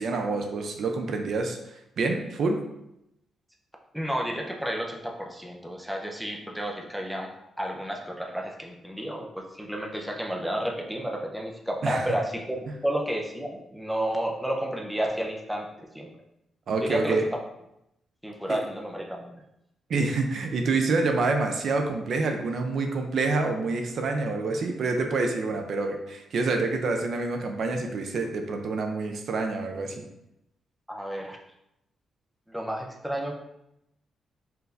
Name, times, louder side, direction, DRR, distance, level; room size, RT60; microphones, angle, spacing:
voice 1, 0.0-2.6 11.8-12.1 16.7-17.2 19.9-30.1, right 3 dB, 60° right, 4 dB, 0.5 m, -27 dB
voice 2, 3.9-15.7 15.9-16.1 16.8-17.3 18.2-19.3 30.9-31.4 32.5-33.4, right 1 dB, ahead, 0 dB, 0.6 m, -31 dB
4.5 x 2.6 x 3.3 m, 0.83 s
cardioid pair, 110°, 0 cm